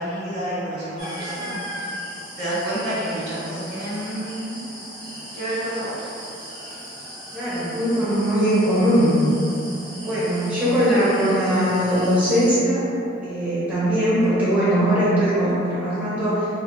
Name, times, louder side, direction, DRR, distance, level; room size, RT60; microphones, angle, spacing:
voice 1, 0.0-1.9 2.4-4.6 5.3-6.1, right 1 dB, 60° right, -10 dB, 1.4 m, -29 dB
sound 1, 1.0-12.6, equal, 25° right, 1.1 m, -37 dB
voice 2, 7.3-9.2 10.0-12.9 13.2-16.5, equal, 10° right, -11 dB, 0.8 m, -20 dB
4.0 x 3.3 x 2.3 m, 2.8 s
head